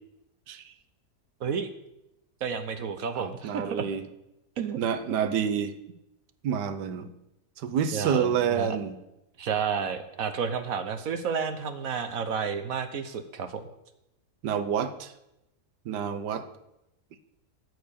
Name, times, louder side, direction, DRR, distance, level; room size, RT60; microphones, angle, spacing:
voice 1, 2.4-3.9 4.6-4.8 7.9-8.8 9.4-13.6, right 6 dB, 60° right, 9 dB, 1.2 m, -31 dB
voice 2, 3.2-4.0 4.8-5.7 6.4-7.1 7.6-8.9 14.4-15.1 15.9-16.5, right 7 dB, 90° right, 11 dB, 1.4 m, -28 dB
13.5 x 4.8 x 8.5 m, 0.88 s
omnidirectional pair, 1.8 m